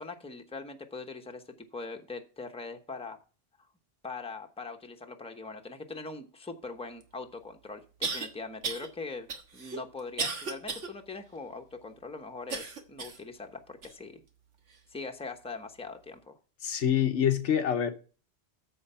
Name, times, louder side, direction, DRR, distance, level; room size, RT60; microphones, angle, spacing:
voice 1, 0.0-3.2 4.0-9.3 9.5-14.2 14.9-16.3, left 3 dB, 5° left, 0.9 m, -41 dB
sound 1, 7.0-7.1 8.0-8.3 8.6-8.9 9.3-10.9 11.4-11.5 12.5-13.2 13.8-13.9 14.7-14.8, right 4 dB, 90° right, 1.7 m, -34 dB
voice 2, 16.6-17.9, left 9 dB, 80° left, 1.3 m, -26 dB
13.5 x 4.8 x 5.6 m
omnidirectional pair, 1.2 m